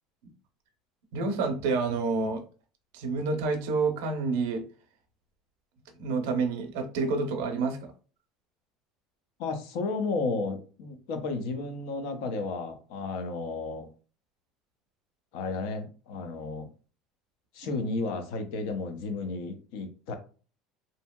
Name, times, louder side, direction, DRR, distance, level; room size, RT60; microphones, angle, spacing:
voice 1, 1.1-2.4 2.9-4.6 6.0-7.9, right 4 dB, 85° right, 0.6 m, -28 dB
voice 2, 9.4-13.9 15.3-16.7 17.5-20.2, left 3 dB, 75° left, 0.5 m, -33 dB
2.7 x 2.6 x 2.2 m
cardioid pair, 155°, 0 cm